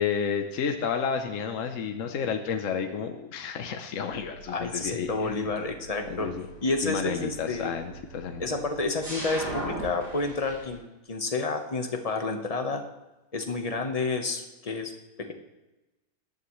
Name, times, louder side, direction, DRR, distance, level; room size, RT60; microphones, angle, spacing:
voice 1, 0.0-5.5 6.1-6.4 6.8-8.4, left 6 dB, 60° left, 5 dB, 1.2 m, -31 dB
sound 1, 4.1-10.7, right 1 dB, 45° right, 6.0 m, -41 dB
voice 2, 4.5-6.3 6.6-7.8 8.4-10.8 11.1-12.8 13.3-14.9, left 3 dB, 25° left, 4 dB, 1.2 m, -30 dB
18.5 x 12.0 x 3.2 m, 1.0 s
omnidirectional pair, 1.6 m